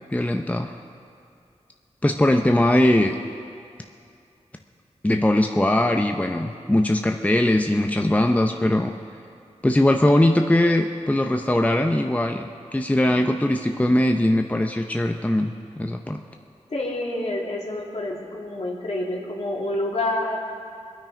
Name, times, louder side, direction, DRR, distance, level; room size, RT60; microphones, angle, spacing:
voice 1, 0.1-0.7 2.0-3.2 5.0-8.9 9.6-16.2, left 1 dB, 10° left, 4 dB, 0.6 m, -20 dB
voice 2, 16.7-20.4, left 1 dB, 60° left, -3 dB, 2.6 m, -28 dB
22.0 x 9.2 x 5.2 m, 2.5 s
wide cardioid pair, 60°, 12 cm